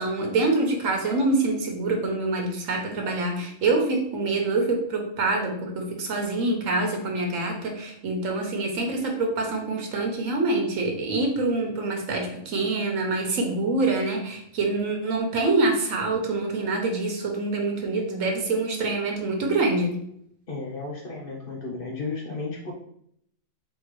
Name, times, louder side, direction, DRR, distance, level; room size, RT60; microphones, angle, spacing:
voice 1, 0.0-19.9, right 3 dB, 85° right, 2 dB, 1.3 m, -25 dB
voice 2, 20.5-22.7, left 3 dB, 50° left, -1 dB, 0.8 m, -33 dB
3.7 x 3.6 x 3.1 m, 0.70 s
omnidirectional pair, 1.3 m